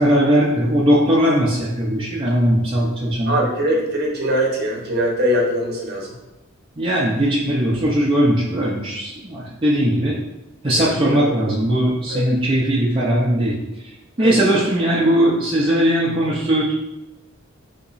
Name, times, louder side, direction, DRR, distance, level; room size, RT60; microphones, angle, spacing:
voice 1, 0.0-3.4 6.8-10.2 10.6-13.6 14.2-16.7, equal, 25° right, -6 dB, 0.5 m, -19 dB
voice 2, 3.2-6.2 10.8-10.9 11.2-11.3 12.1-12.2 14.2-14.4, equal, 50° right, -1 dB, 0.9 m, -22 dB
3.5 x 2.9 x 4.0 m, 0.96 s
head